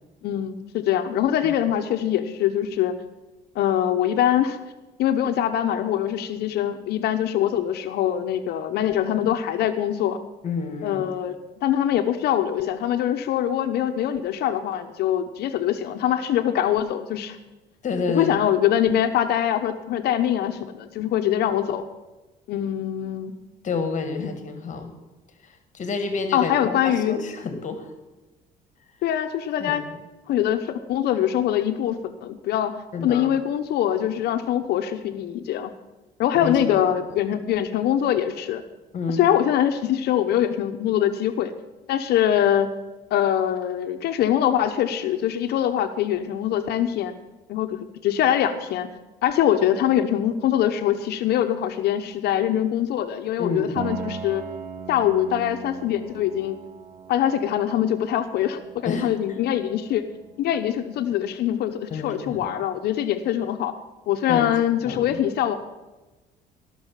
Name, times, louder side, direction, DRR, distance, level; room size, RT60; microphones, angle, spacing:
voice 1, 0.2-3.0 3.5-4.6 5.0-10.2 10.8-11.3 11.6-17.4 18.1-21.8 22.5-23.3 24.2-24.3 26.3-27.2 29.0-29.8 30.3-32.7 33.0-35.7 36.2-38.6 39.1-41.5 41.9-42.7 43.1-47.1 47.5-48.9 49.2-54.4 54.9-56.6 57.1-60.0 60.4-63.8 64.1-65.6, left 10 dB, 75° left, 8 dB, 1.0 m, -23 dB
voice 2, 10.4-11.1 17.8-18.4 23.6-25.0 25.4-27.9 29.6-29.8 32.9-33.3 36.3-36.9 38.9-39.2 53.4-53.7 58.8-59.4 61.9-62.5 64.3-64.5 64.8-65.2, left 4 dB, 45° left, 7 dB, 1.8 m, -29 dB
Piano, 53.8-63.3, right 6 dB, 60° right, 1.1 m, -41 dB
18.0 x 6.4 x 7.4 m, 1.1 s
cardioid pair, 110°, 17 cm